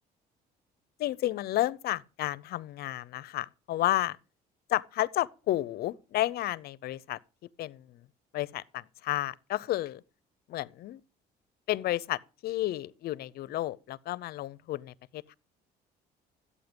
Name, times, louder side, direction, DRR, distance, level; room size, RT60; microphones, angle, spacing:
voice 1, 1.0-4.2 4.7-7.2 7.6-8.0 8.3-10.0 10.5-11.0 11.7-15.3, left 15 dB, 65° left, 0.6 m, -31 dB
13.5 x 8.6 x 5.2 m
cardioid pair, 110°, 17 cm